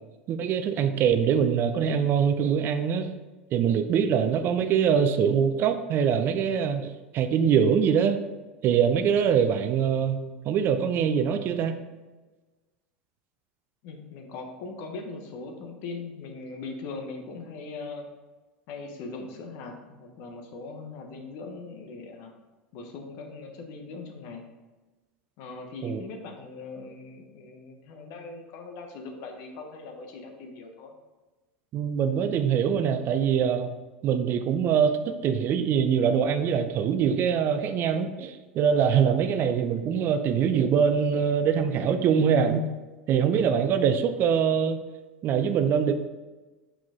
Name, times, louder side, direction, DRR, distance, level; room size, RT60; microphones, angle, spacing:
voice 1, 0.3-3.1 3.5-8.2 8.6-11.8 25.8-26.0 31.7-33.7 34.0-42.6 43.1-44.8 45.2-45.9, right 7 dB, 45° right, 9 dB, 0.5 m, -23 dB
voice 2, 13.8-18.1 18.7-22.3 22.7-24.4 25.4-30.9, left 3 dB, 60° left, 4 dB, 1.1 m, -40 dB
5.7 x 4.9 x 3.6 m, 1.2 s
hypercardioid pair, 95°, 5 cm